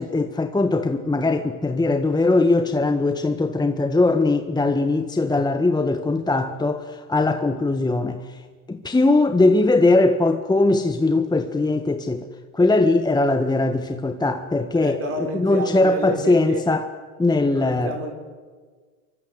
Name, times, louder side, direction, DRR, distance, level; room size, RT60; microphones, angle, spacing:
voice 1, 0.0-8.4 8.7-12.3 12.5-15.0 15.3-16.8 17.2-17.9, left 2 dB, 10° left, 1.6 m, -20 dB
voice 2, 14.7-16.6 17.5-18.1, right 2 dB, 30° right, 6.1 m, -30 dB
29.0 x 24.0 x 8.1 m
hypercardioid pair, 95°, 45 cm